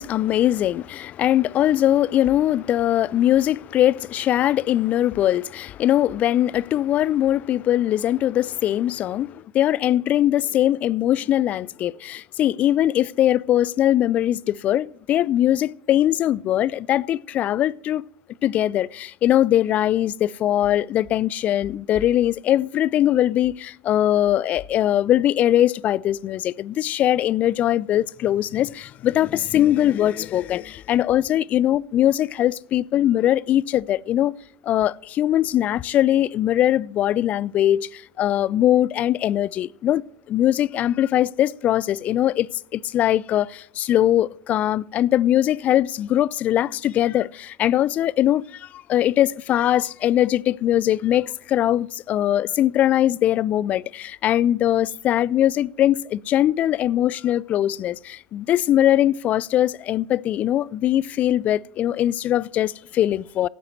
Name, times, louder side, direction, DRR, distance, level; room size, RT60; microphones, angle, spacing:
voice 1, 0.0-18.0 18.4-34.3 34.6-40.0 40.3-63.5, left 12 dB, 40° left, 0.3 m, -21 dB
17.0 x 9.6 x 3.1 m
figure-of-eight pair, 70°, 4 cm